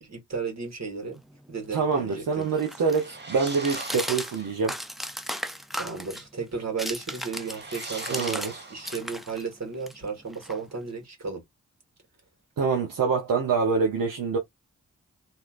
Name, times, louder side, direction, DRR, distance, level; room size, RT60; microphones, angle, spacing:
voice 1, 0.0-1.2 1.5-2.5 5.8-11.4, right 5 dB, 55° right, 1.8 m, -34 dB
sound 1, 1.2-8.6 8.8-11.0, equal, ahead, 0.5 m, -37 dB
voice 2, 1.7-4.8 8.1-8.6 12.6-14.4, right 5 dB, 85° right, 0.8 m, -25 dB
sound 2, 2.6-4.7 7.0-9.4, right 3 dB, 35° right, 1.0 m, -41 dB
3.0 x 2.7 x 2.5 m
cardioid pair, 45°, 32 cm